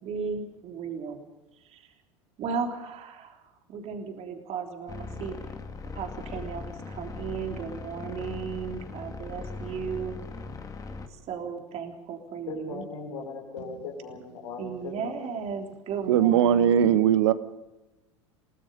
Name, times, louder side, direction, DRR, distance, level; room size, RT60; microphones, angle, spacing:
voice 1, 0.0-1.2 1.7-1.9 2.4-3.4 3.7-5.4 5.9-10.2 11.3-12.8 14.6-16.8, right 6 dB, 45° right, 3.5 m, -35 dB
sound 1, 4.9-11.1, left 4 dB, 20° left, 2.3 m, -39 dB
voice 2, 12.5-15.3, left 4 dB, 75° left, 5.5 m, -38 dB
voice 3, 16.1-17.3, right 9 dB, 65° right, 1.2 m, -20 dB
29.5 x 18.5 x 5.4 m
figure-of-eight pair, 80°, 16 cm